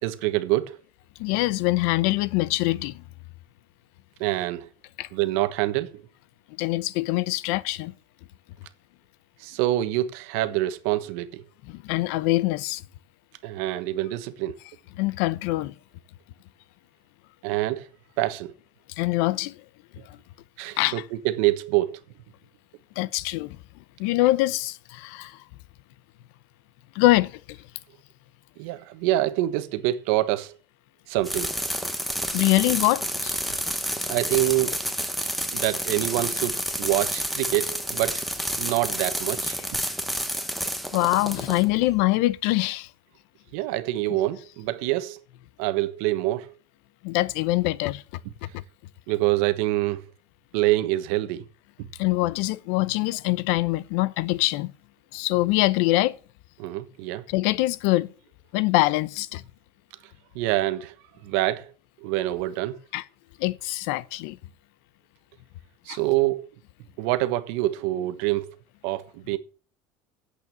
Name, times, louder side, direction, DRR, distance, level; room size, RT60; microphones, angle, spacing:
voice 1, 0.0-0.8 4.2-4.7 5.1-6.0 9.4-11.4 13.4-14.6 17.4-17.9 18.2-18.5 20.6-22.0 28.6-30.5 31.1-31.5 34.1-34.8 35.5-38.2 38.6-39.6 43.5-45.2 45.6-46.5 49.1-50.0 50.5-51.4 56.6-57.2 60.3-60.9 61.2-61.7 62.0-62.8 65.8-66.5 67.0-68.5 68.8-69.4, right 16 dB, 70° right, 1.2 m, -26 dB
voice 2, 1.2-3.0 5.0-5.1 6.6-7.9 11.7-12.8 15.0-15.7 19.0-19.6 20.1-20.2 20.8-21.0 23.0-23.6 24.0-25.4 26.9-27.6 32.3-33.4 40.9-42.9 47.0-48.0 48.4-48.6 52.0-54.7 55.1-56.2 57.3-58.1 58.5-59.4 62.9-63.0 63.4-64.4 65.9-66.0, left 18 dB, 70° left, 0.7 m, -24 dB
sound 1, 31.2-42.0, equal, ahead, 1.1 m, -29 dB
9.4 x 8.3 x 7.2 m
cardioid pair, 175°, 8 cm